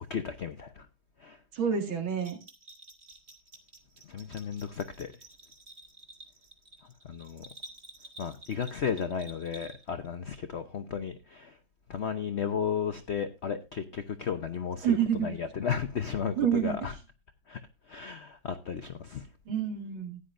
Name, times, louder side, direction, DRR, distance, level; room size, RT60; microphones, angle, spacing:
voice 1, 0.1-0.9 1.2-1.4 4.1-5.1 7.1-7.5 8.2-11.6 11.9-16.9 17.5-17.6 17.9-19.3, left 7 dB, 70° left, 0.6 m, -34 dB
voice 2, 1.5-2.4 14.8-15.3 16.4-16.9 19.5-20.2, right 8 dB, 80° right, 2.9 m, -28 dB
Bell, 2.2-10.1, right 1 dB, 30° right, 1.8 m, -51 dB
15.0 x 9.9 x 2.5 m
omnidirectional pair, 2.2 m